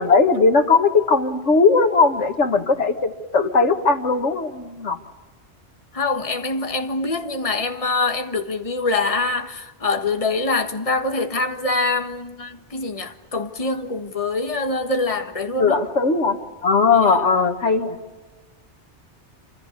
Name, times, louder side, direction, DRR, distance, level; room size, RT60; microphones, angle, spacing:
voice 1, 0.0-5.0 15.6-18.0, left 4 dB, 90° left, 2.0 m, -18 dB
voice 2, 5.9-15.7 17.0-17.1, left 3 dB, 30° left, 1.6 m, -24 dB
28.0 x 26.0 x 6.7 m
omnidirectional pair, 1.2 m